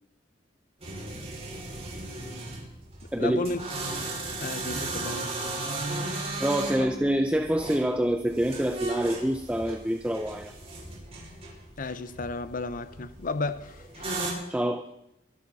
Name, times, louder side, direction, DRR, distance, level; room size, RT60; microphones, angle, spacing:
metal locker open close creaks slow groan, 0.8-14.3, right 2 dB, 35° right, 5.8 m, -36 dB
voice 1, 3.2-3.6 4.4-5.4 11.8-14.1, left 3 dB, 50° left, 0.7 m, -33 dB
voice 2, 6.4-10.5 14.5-14.8, right 1 dB, 5° right, 0.7 m, -26 dB
24.0 x 12.0 x 4.2 m
head